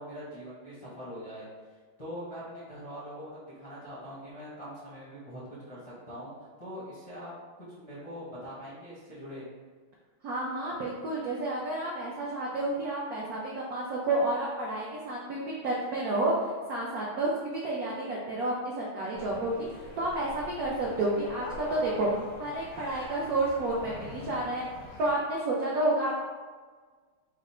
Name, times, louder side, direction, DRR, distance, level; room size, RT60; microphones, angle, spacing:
voice 1, 0.0-5.4 5.7-7.3 7.6-9.5, equal, 50° left, -9 dB, 0.4 m, -43 dB
voice 2, 10.2-16.3 16.7-19.7 20.0-22.1 22.4-24.6 25.0-26.2, right 2 dB, 90° right, -4 dB, 0.8 m, -30 dB
sound 1, 19.1-25.2, left 2 dB, 85° left, 1.6 m, -44 dB
4.7 x 2.0 x 4.2 m, 1.5 s
omnidirectional pair, 2.3 m